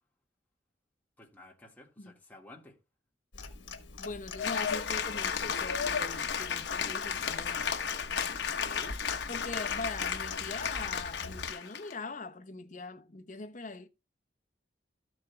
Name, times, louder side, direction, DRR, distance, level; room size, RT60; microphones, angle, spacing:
voice 1, 1.2-2.8 8.3-9.0, left 2 dB, 10° left, 1.7 m, -52 dB
Clock, 3.3-11.5, left 3 dB, 90° left, 1.3 m, -44 dB
voice 2, 4.0-7.9 9.3-13.9, left 3 dB, 45° left, 0.9 m, -42 dB
Cheering / Applause, 4.4-11.9, left 7 dB, 70° left, 1.0 m, -33 dB
sound 1, 4.9-10.7, left 1 dB, 30° right, 5.4 m, -63 dB
13.5 x 7.3 x 2.2 m
head